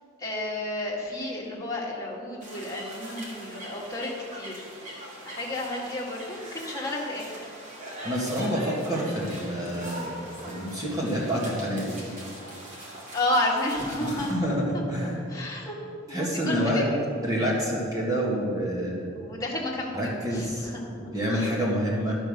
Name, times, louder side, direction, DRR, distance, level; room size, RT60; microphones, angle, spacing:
voice 1, 0.2-4.7 5.3-7.4 13.1-15.8 16.1-17.2 19.1-21.6, left 1 dB, 20° left, -5 dB, 1.8 m, -32 dB
sound 1, 2.4-14.3, right 1 dB, 40° right, 2.3 m, -41 dB
voice 2, 8.0-10.1 10.5-12.0 14.1-15.1 16.1-16.9 17.2-19.1 19.9-20.4 21.0-22.2, equal, 20° right, -5 dB, 2.0 m, -27 dB
11.5 x 5.4 x 6.6 m, 2.2 s
head